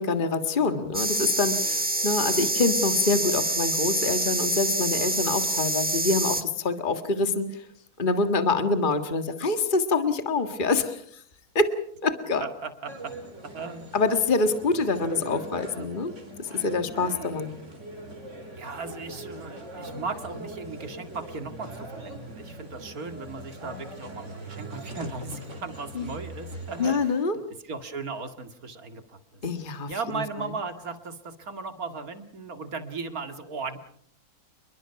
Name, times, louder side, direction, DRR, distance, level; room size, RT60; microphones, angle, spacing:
voice 1, 0.0-7.6 8.0-11.0 11.6-11.7 12.0-12.5 13.9-16.1 16.4-17.5 26.0-26.1 26.8-27.4 29.4-30.2, left 3 dB, 35° left, 8 dB, 1.8 m, -26 dB
sound 1, 0.9-6.4, right 2 dB, 10° right, 0.7 m, -26 dB
voice 2, 12.4-13.1 13.4-13.9 18.6-27.1 27.6-29.4 29.9-33.8, right 4 dB, 75° right, 8 dB, 2.6 m, -37 dB
sound 2, 12.8-26.9, right 1 dB, 50° right, 4.6 m, -41 dB
29.0 x 22.0 x 5.8 m, 0.63 s
omnidirectional pair, 1.6 m